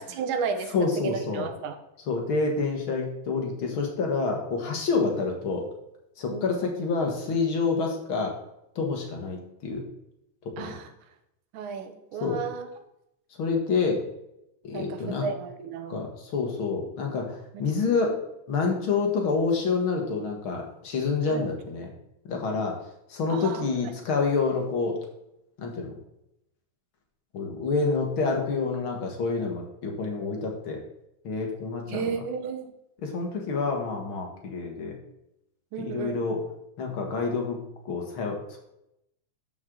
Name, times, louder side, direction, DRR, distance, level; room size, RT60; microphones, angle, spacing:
voice 1, 0.0-1.8 6.3-6.5 10.6-10.9 11.5-12.7 14.7-16.1 21.3-21.5 23.3-23.7 31.9-32.7 35.7-36.2, right 6 dB, 85° right, 8 dB, 2.4 m, -33 dB
voice 2, 0.7-1.5 2.1-5.6 6.2-8.3 8.8-9.8 10.5-10.8 12.2-12.4 13.4-14.0 14.6-15.3 15.9-17.3 17.6-18.2 18.5-21.9 22.3-22.8 23.1-25.0 25.6-25.9 27.3-30.8 31.2-32.1 33.0-35.0 35.8-36.4 36.8-37.6 37.9-38.6, left 4 dB, 50° left, 1 dB, 2.0 m, -28 dB
12.5 x 6.3 x 3.9 m, 0.83 s
omnidirectional pair, 3.5 m